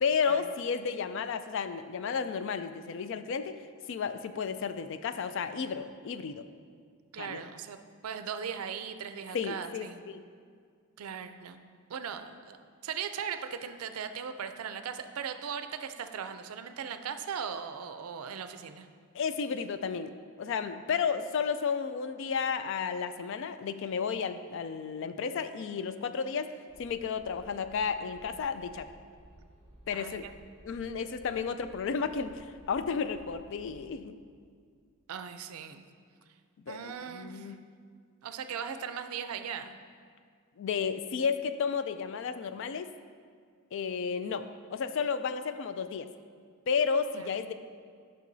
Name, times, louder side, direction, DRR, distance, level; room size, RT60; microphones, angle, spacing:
voice 1, 0.0-3.6 3.9-6.4 7.2-7.4 9.3-10.2 19.1-20.1 20.4-26.5 26.8-28.9 29.9-30.3 30.6-34.2 36.7-37.6 40.6-42.9 43.7-44.4 44.7-46.1 46.7-47.5, left 6 dB, 60° left, 11 dB, 0.3 m, -32 dB
voice 2, 7.1-10.0 11.0-18.9 29.9-30.3 35.1-35.8 36.7-37.5 38.2-39.8 47.2-47.3, right 7 dB, 85° right, 9 dB, 0.4 m, -39 dB
sound 1, 26.7-33.9, right 1 dB, 75° left, 1.7 m, -56 dB
10.0 x 5.6 x 2.7 m, 2.1 s
head